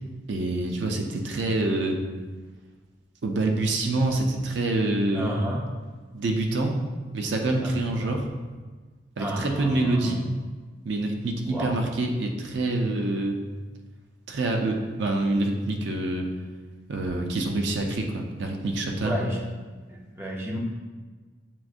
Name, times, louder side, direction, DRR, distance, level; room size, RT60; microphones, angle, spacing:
voice 1, 0.3-2.0 3.2-5.3 6.1-6.8 7.1-8.3 9.2-10.3 10.9-13.4 14.3-16.3 16.9-19.2, right 2 dB, 70° right, 2 dB, 0.5 m, -26 dB
voice 2, 5.1-5.6 7.6-7.7 8.0-8.2 9.2-10.3 11.5-11.7 19.0-19.4 19.9-20.6, right 1 dB, 15° right, -2 dB, 0.5 m, -32 dB
7.2 x 2.6 x 2.4 m, 1.4 s
head